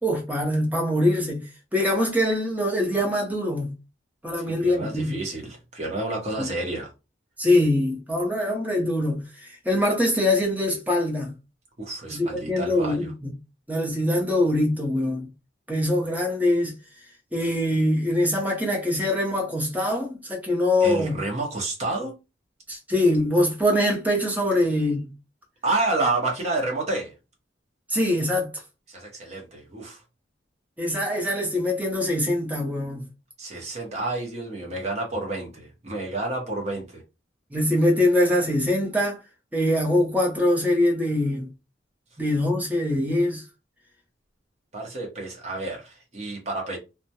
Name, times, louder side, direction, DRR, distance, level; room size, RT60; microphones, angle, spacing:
voice 1, 0.0-3.7 4.2-5.2 6.4-6.5 7.4-11.3 12.1-13.3 13.7-15.3 15.7-16.7 17.3-21.2 22.7-25.1 27.9-28.6 30.8-33.1 37.5-39.2 39.5-41.5 42.2-43.4, left 1 dB, 10° right, 0.6 m, -23 dB
voice 2, 4.4-6.9 11.8-13.1 20.8-22.1 25.6-27.1 28.9-30.0 33.4-37.0 44.7-46.8, right 2 dB, 35° right, 0.8 m, -29 dB
2.2 x 2.0 x 2.7 m
head